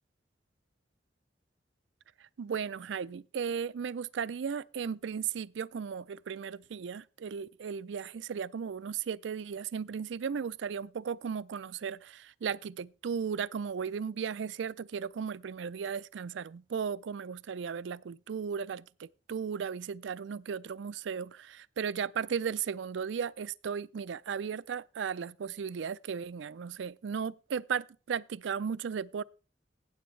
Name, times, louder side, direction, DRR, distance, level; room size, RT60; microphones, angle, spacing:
voice 1, 2.4-29.2, right 6 dB, 75° right, 0.4 m, -36 dB
16.0 x 7.8 x 3.2 m
head